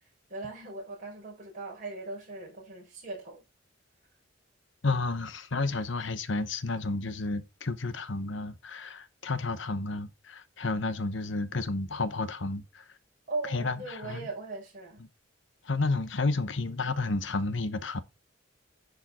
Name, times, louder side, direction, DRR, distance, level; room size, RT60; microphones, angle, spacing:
voice 1, 0.3-3.4 13.3-15.0, right 3 dB, 40° right, 5.1 m, -39 dB
voice 2, 4.8-12.8 13.5-14.3 15.6-18.0, left 3 dB, 70° left, 0.9 m, -31 dB
10.5 x 4.9 x 4.2 m
head